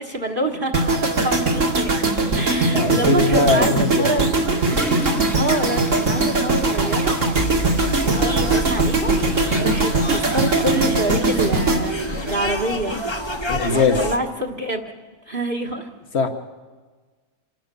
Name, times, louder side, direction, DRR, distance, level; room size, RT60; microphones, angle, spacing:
voice 1, 0.0-2.0 2.3-4.5 5.3-7.2 8.0-9.1 9.6-13.0 14.0-14.9 15.3-15.9, right 1 dB, 40° right, 3 dB, 1.7 m, -26 dB
sound 1, 0.7-12.9 13.2-13.5, right 2 dB, 60° right, 2.6 m, -20 dB
voice 2, 2.7-4.1 13.5-14.0 16.1-16.3, left 4 dB, 50° left, 7 dB, 1.8 m, -20 dB
Water / Toilet flush, 3.7-11.6, left 1 dB, ahead, 1.3 m, -35 dB
sound 2, 7.3-14.2, left 1 dB, 20° left, 1.3 m, -29 dB
27.0 x 17.5 x 7.0 m, 1.4 s
omnidirectional pair, 1.4 m